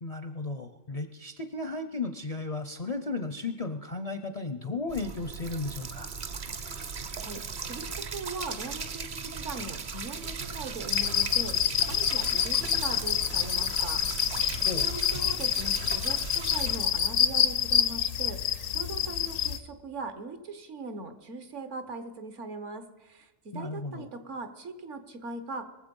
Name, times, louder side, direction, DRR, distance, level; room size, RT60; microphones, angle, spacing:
voice 1, 0.0-6.1 14.7-14.9 23.5-24.1, left 3 dB, 45° left, 9 dB, 0.5 m, -35 dB
sound 1, 4.9-16.8, right 5 dB, 45° right, 0.8 m, -38 dB
voice 2, 7.2-11.5 11.9-25.7, right 3 dB, 70° right, 9 dB, 1.5 m, -40 dB
sound 2, 10.9-19.6, left 9 dB, 80° left, 1.1 m, -27 dB
22.0 x 7.5 x 5.3 m, 1.1 s
omnidirectional pair, 1.3 m